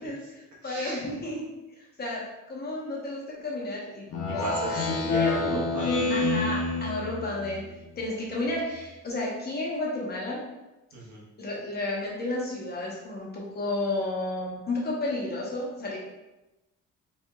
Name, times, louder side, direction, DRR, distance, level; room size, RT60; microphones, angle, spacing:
voice 1, 0.0-1.5 1.8-4.1 5.2-5.3 6.1-7.7 8.0-10.4 11.4-16.0, left 2 dB, 30° left, -3 dB, 0.8 m, -32 dB
voice 2, 0.6-1.0 4.3-5.9 10.9-11.2, right 2 dB, 70° right, -4 dB, 1.1 m, -35 dB
Speech synthesizer, 4.1-7.6, left 3 dB, 55° left, 0.5 m, -27 dB
4.1 x 2.8 x 2.3 m, 1.0 s
cardioid pair, 140°, 31 cm